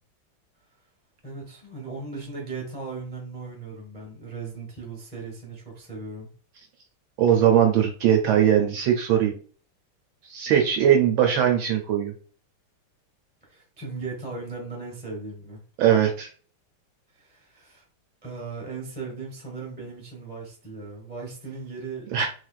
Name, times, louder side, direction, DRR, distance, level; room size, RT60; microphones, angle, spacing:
voice 1, 1.2-6.3 13.4-15.6 17.1-17.8 18.2-22.3, right 4 dB, 5° right, 0.8 m, -37 dB
voice 2, 7.2-9.4 10.2-12.1 15.8-16.3 22.1-22.3, right 9 dB, 75° right, 1.2 m, -20 dB
3.6 x 3.2 x 2.4 m
omnidirectional pair, 2.4 m